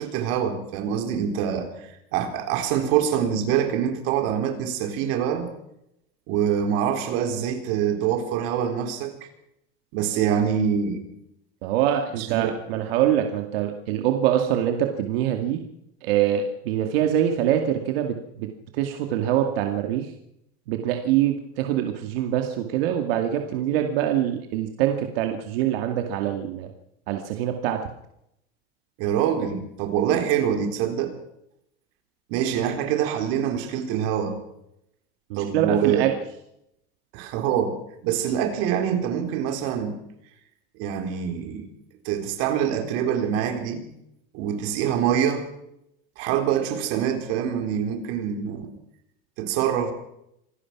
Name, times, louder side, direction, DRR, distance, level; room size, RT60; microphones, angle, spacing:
voice 1, 0.0-5.5 6.3-9.3 9.9-11.0 12.2-12.6 29.0-31.1 32.3-34.4 35.4-36.0 37.1-37.7 38.0-40.0 40.8-41.7 42.0-43.8 44.3-45.5 46.2-48.7 49.4-49.9, right 9 dB, 50° right, 5 dB, 4.2 m, -25 dB
voice 2, 11.6-15.6 16.0-20.1 20.7-26.7 27.1-27.8 35.3-36.1, right 11 dB, 80° right, 4 dB, 2.3 m, -24 dB
26.0 x 17.5 x 6.0 m, 0.80 s
cardioid pair, 180°, 29 cm